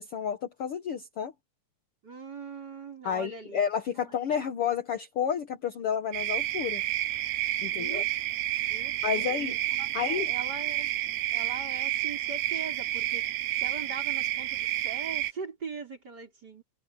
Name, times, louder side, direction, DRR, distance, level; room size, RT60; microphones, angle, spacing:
voice 1, 0.0-1.3 3.1-6.8 7.6-8.0 9.0-9.6 9.9-10.3, left 8 dB, 60° left, 1.7 m, -31 dB
voice 2, 2.0-3.6 4.0-4.3 7.6-8.1 8.7-10.9 11.3-13.3 13.6-16.6, right 4 dB, 30° right, 5.7 m, -41 dB
sound 1, 6.1-15.3, right 15 dB, 75° right, 2.1 m, -30 dB
omnidirectional pair, 3.5 m